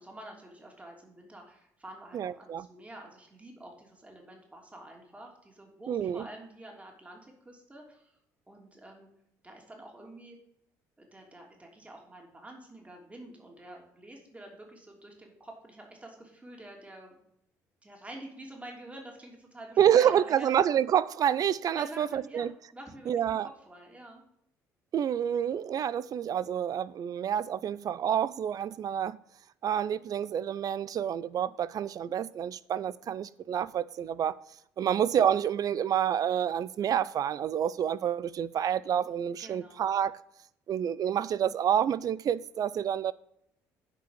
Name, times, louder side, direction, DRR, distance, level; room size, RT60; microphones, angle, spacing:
voice 1, 0.0-8.2 8.5-9.1 9.4-10.4 11.0-17.2 17.8-20.5 21.7-23.4 23.7-24.2 34.8-35.0 39.4-39.8, right 1 dB, 15° right, 2.9 m, -48 dB
voice 2, 2.1-2.7 5.9-6.3 19.8-22.5 23.1-23.5 24.9-29.2 29.6-34.3 34.8-40.1 40.7-43.1, right 9 dB, 50° right, 0.5 m, -28 dB
8.4 x 5.1 x 7.2 m
supercardioid pair, 70°, 8 cm